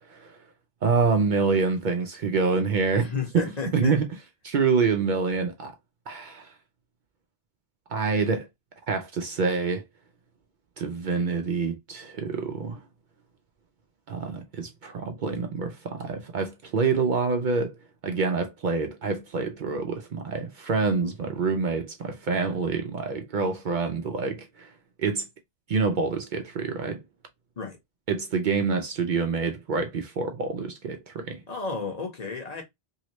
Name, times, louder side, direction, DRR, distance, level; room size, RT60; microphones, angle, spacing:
voice 1, 0.8-3.1 3.4-4.1 4.4-5.7 6.1-6.5 7.9-8.5 8.9-9.8 10.8-12.8 14.1-17.7 18.0-24.7 25.0-25.3 25.7-27.0 28.1-31.4, right 4 dB, 60° right, 0.6 m, -26 dB
voice 2, 2.9-4.0 27.6-27.8 31.5-32.6, left 5 dB, 45° left, 1.0 m, -32 dB
3.0 x 2.8 x 2.9 m
omnidirectional pair, 1.0 m